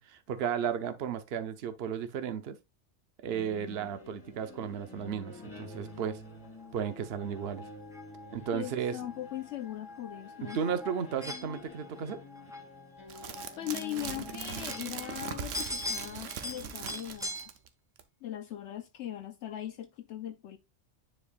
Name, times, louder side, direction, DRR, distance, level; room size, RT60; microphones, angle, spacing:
voice 1, 0.0-2.6 3.2-6.2 6.7-7.6 8.3-9.0 10.4-12.2, right 8 dB, 60° right, 0.9 m, -34 dB
sound 1, 3.3-17.2, left 3 dB, 15° left, 2.5 m, -50 dB
sound 2, 5.7-17.5, left 2 dB, 5° right, 0.8 m, -44 dB
voice 2, 8.5-10.6 13.6-17.6 18.2-20.6, left 12 dB, 75° left, 0.9 m, -39 dB
sound 3, 13.1-17.7 18.0-18.1, right 8 dB, 90° right, 1.1 m, -40 dB
9.8 x 4.4 x 2.4 m
omnidirectional pair, 1.2 m